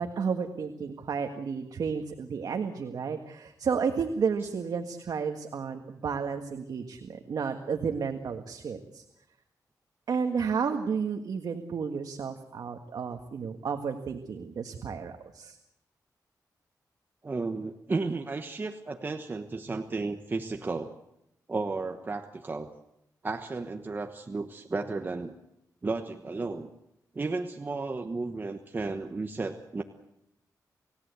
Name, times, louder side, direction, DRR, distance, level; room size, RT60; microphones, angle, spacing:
voice 1, 0.0-9.0 10.1-15.6, right 6 dB, 70° right, 5 dB, 1.7 m, -32 dB
voice 2, 17.2-20.9 21.5-22.7 23.2-25.3 25.8-26.7 27.1-29.8, right 3 dB, 30° right, 5 dB, 1.3 m, -33 dB
30.0 x 16.5 x 8.2 m, 0.82 s
wide cardioid pair, 135°, 7 cm